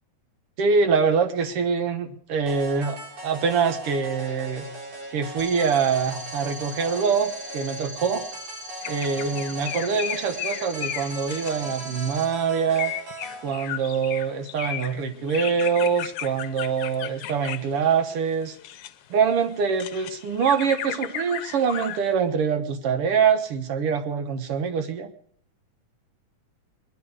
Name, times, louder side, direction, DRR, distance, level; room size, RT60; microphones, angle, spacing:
voice 1, 0.6-4.6 5.1-8.2 8.9-12.9 13.4-18.6 19.1-25.1, right 6 dB, 60° right, 8 dB, 1.8 m, -24 dB
sound 1, 2.5-13.5, right 1 dB, 80° right, 5.3 m, -39 dB
sound 2, 5.4-12.2, equal, 35° right, 7.8 m, -40 dB
sound 3, 8.8-12.0 12.7-18.9 19.4-22.1, left 12 dB, 80° left, 2.2 m, -35 dB
21.5 x 12.0 x 4.8 m, 0.65 s
omnidirectional pair, 3.4 m